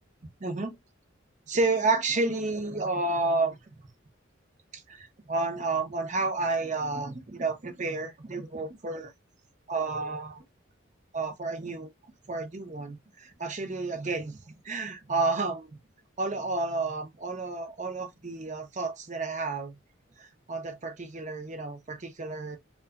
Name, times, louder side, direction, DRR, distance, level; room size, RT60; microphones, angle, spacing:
voice 1, 1.5-3.6 4.7-9.1 9.7-10.4 11.1-11.9 12.3-15.7 16.2-19.7 20.2-22.6, right 3 dB, 35° right, 0.6 m, -31 dB
2.7 x 2.2 x 2.3 m
head